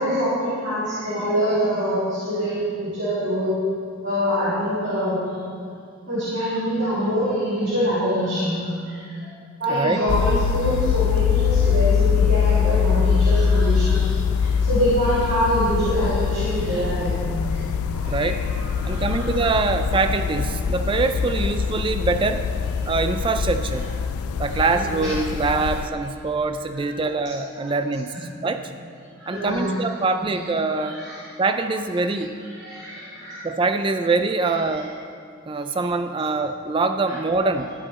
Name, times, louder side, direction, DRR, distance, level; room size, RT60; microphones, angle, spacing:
voice 1, 0.0-3.5 4.0-5.4 6.1-9.1 9.6-17.6 17.9-19.2 24.4-25.1 27.1-27.2 27.6-27.7 29.2-29.7 30.7-31.2 32.5-33.4 34.7-34.8, equal, 55° right, -12 dB, 2.8 m, -25 dB
voice 2, 9.7-10.1 18.1-18.4 18.9-22.5 22.9-23.9 24.4-28.7 29.3-31.0 31.4-32.3 33.4-34.9 35.5-37.7, right 3 dB, 25° right, 8 dB, 0.3 m, -24 dB
sound 1, 10.1-25.9, left 6 dB, 85° left, 0.3 m, -23 dB
13.0 x 7.9 x 4.2 m, 2.3 s
head